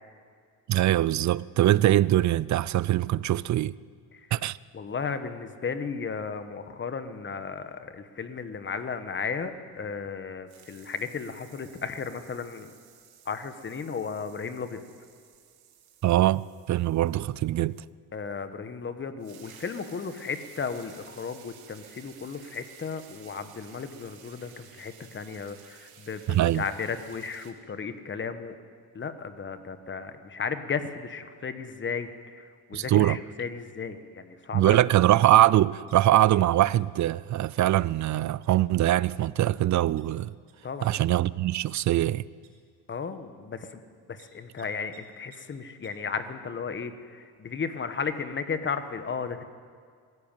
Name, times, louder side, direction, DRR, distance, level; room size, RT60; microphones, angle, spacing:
voice 1, 0.7-3.8 4.3-4.6 16.0-17.8 26.3-26.6 32.7-33.2 34.5-40.3 40.8-42.3, right 14 dB, 45° right, 0.5 m, -22 dB
voice 2, 4.7-12.7 13.2-14.8 18.1-28.5 28.9-34.8 40.6-40.9 42.9-43.8 44.1-49.4, left 5 dB, 30° left, 1.4 m, -35 dB
sound 1, 9.0-10.2 10.5-17.9 18.9-19.0 19.2-27.5, right 9 dB, 65° right, 2.5 m, -54 dB
sound 2, 35.2-35.4 35.7-36.3 36.7-37.1 37.6-37.7 38.0-38.1 38.4-38.5 38.8-39.0 39.4-39.5 40.0-40.1 40.5-40.6 40.9-41.0 41.5-41.6 41.9-42.0 42.4-42.5 43.0-43.1 44.2-44.3 44.6-44.7 44.9-45.0 45.3-45.4 45.8-45.9, right 15 dB, 80° right, 5.1 m, -58 dB
20.0 x 16.0 x 9.2 m
cardioid pair, 130°, 41 cm